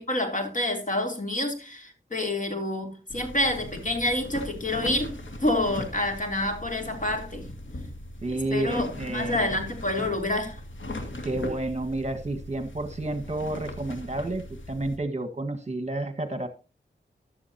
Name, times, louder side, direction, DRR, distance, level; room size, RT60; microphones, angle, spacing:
voice 1, 0.0-7.5 8.3-10.6, left 1 dB, 40° left, 3 dB, 3.3 m, -28 dB
sound 1, 3.1-15.0, left 1 dB, 75° left, 2.2 m, -39 dB
voice 2, 8.2-9.5 11.2-16.5, right 2 dB, 35° right, 6 dB, 1.7 m, -30 dB
14.5 x 11.5 x 2.8 m, 0.29 s
wide cardioid pair, 60°, 20 cm